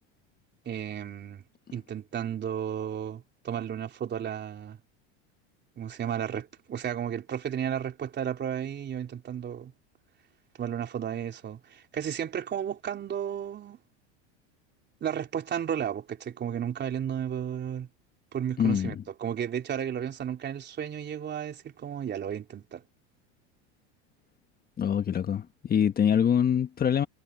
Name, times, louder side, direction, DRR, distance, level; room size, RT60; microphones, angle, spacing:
voice 1, 0.7-1.4 1.7-4.8 5.8-9.7 10.6-13.8 15.0-17.9 18.3-22.8, right 9 dB, 30° right, 3.5 m, -33 dB
voice 2, 18.6-18.9 24.8-27.1, left 8 dB, 25° left, 1.5 m, -24 dB
supercardioid pair, 120°, 34 cm